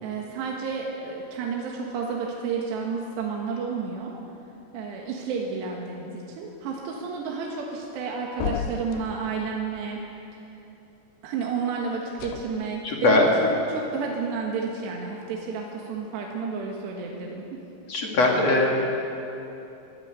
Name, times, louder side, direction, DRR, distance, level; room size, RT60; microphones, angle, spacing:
voice 1, 0.0-4.2 4.7-10.0 11.2-17.5, right 5 dB, 75° right, -1 dB, 3.6 m, -31 dB
sound 1, 8.4-9.3 12.1-12.5, left 7 dB, 85° left, 3.5 m, -32 dB
voice 2, 12.8-13.3 17.9-18.8, left 2 dB, 45° left, -1 dB, 2.7 m, -20 dB
23.5 x 15.0 x 8.2 m, 2.9 s
omnidirectional pair, 5.1 m